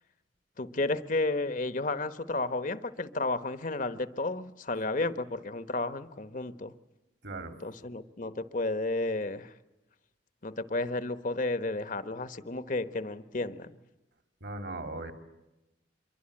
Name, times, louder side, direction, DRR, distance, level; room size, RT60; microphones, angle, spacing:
voice 1, 0.6-6.7 7.6-9.5 10.4-13.7, left 2 dB, 45° left, 12 dB, 1.1 m, -32 dB
voice 2, 7.2-7.6 14.4-15.1, right 2 dB, 60° right, 8 dB, 3.0 m, -38 dB
26.5 x 23.5 x 8.7 m, 0.97 s
head